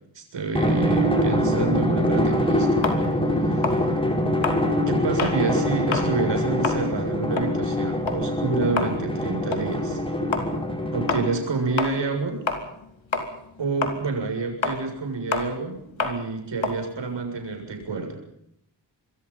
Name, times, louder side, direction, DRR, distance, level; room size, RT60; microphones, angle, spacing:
voice 1, 0.1-2.7 3.3-3.9 4.9-10.0 10.9-12.4 13.6-18.2, right 3 dB, 70° right, 3 dB, 7.4 m, -28 dB
Drum, 0.5-11.5, equal, 10° left, 5.1 m, -24 dB
sound 1, 2.8-5.4 5.8-6.1 6.5-12.9 13.1-17.9, left 4 dB, 85° left, 4.1 m, -30 dB
27.5 x 22.0 x 5.8 m, 0.75 s
wide cardioid pair, 160°, 45 cm